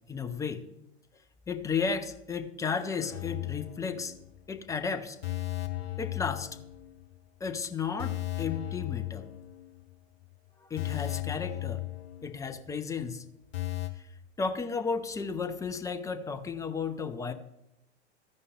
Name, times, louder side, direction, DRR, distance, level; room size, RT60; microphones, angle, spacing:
voice 1, 0.1-0.6 1.5-4.1 4.5-5.2 6.0-6.5 7.4-9.3 10.7-11.8 12.2-13.2 14.4-17.3, left 5 dB, 10° left, 8 dB, 0.5 m, -33 dB
sound 1, 3.1-4.4 4.7-4.8 5.2-7.2 7.4-7.6 8.0-9.9 10.2-10.3 10.8-12.7 13.0-13.1 13.5-13.9, left 18 dB, 65° left, 1.1 m, -36 dB
15.0 x 5.3 x 3.5 m, 0.83 s
figure-of-eight pair, 95°, 34 cm